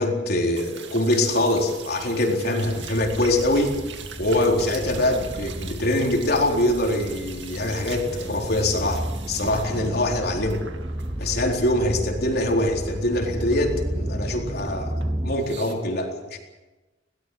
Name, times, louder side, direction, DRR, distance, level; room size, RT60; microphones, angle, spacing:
voice 1, 0.0-3.8 4.2-10.6 11.2-14.9 15.2-16.4, left 1 dB, 60° left, 1 dB, 4.1 m, -23 dB
sound 1, 0.5-11.9 12.2-14.3 14.6-15.7, right 5 dB, 85° right, 2.4 m, -42 dB
sound 2, 2.6-15.4, right 1 dB, 20° right, 0.9 m, -33 dB
21.5 x 18.0 x 7.9 m, 1.2 s
head